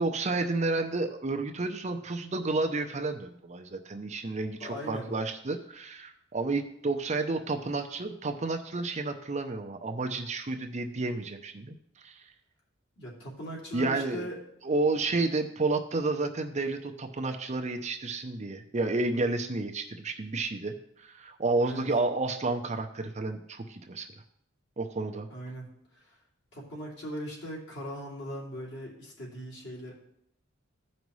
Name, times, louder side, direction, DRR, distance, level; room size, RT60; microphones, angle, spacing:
voice 1, 0.0-11.8 12.0-12.2 13.7-14.2 14.6-20.7 21.0-24.1 24.8-25.3, right 3 dB, 35° right, 5 dB, 0.6 m, -31 dB
voice 2, 4.6-5.1 13.0-14.4 21.6-21.9 25.3-26.2 26.5-29.9, equal, 55° left, -3 dB, 2.8 m, -39 dB
15.5 x 5.3 x 3.2 m, 0.73 s
head